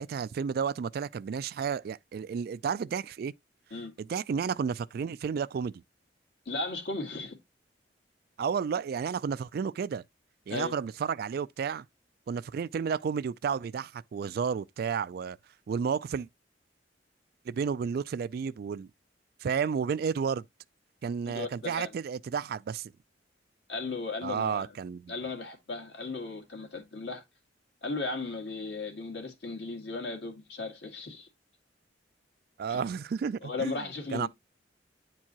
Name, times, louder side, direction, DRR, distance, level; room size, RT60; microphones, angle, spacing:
voice 1, 0.0-3.3 4.0-5.7 8.4-10.0 10.5-11.9 12.3-15.4 15.7-16.3 17.5-18.9 19.4-20.4 21.0-22.9 24.2-25.1 32.6-33.8 34.1-34.3, right 6 dB, 55° right, 0.3 m, -32 dB
voice 2, 6.5-7.4 10.5-10.7 21.3-21.9 23.7-24.7 25.1-27.2 27.8-31.3 32.7-32.8 33.4-34.3, left 3 dB, 65° left, 2.1 m, -36 dB
9.5 x 4.6 x 2.9 m
head